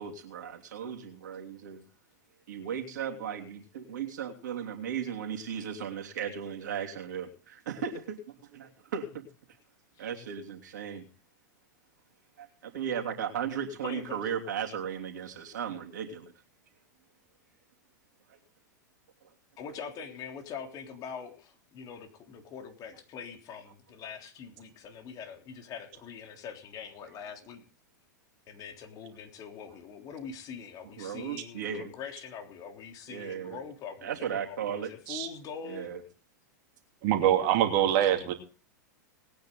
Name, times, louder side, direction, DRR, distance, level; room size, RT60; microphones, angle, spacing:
voice 1, 0.0-1.8 2.5-8.2 8.5-9.3 10.0-11.1 12.4-16.3 18.3-18.4 31.0-31.9 33.1-33.6 34.0-34.9 35.6-36.0, right 8 dB, 70° right, 2 dB, 3.1 m, -36 dB
voice 2, 13.8-14.2 19.6-27.6 28.5-35.9, left 6 dB, 40° left, 3 dB, 3.5 m, -43 dB
voice 3, 37.0-38.3, right 11 dB, 50° right, 5 dB, 2.6 m, -24 dB
20.0 x 9.4 x 3.9 m, 0.38 s
hypercardioid pair, 100°, 10 cm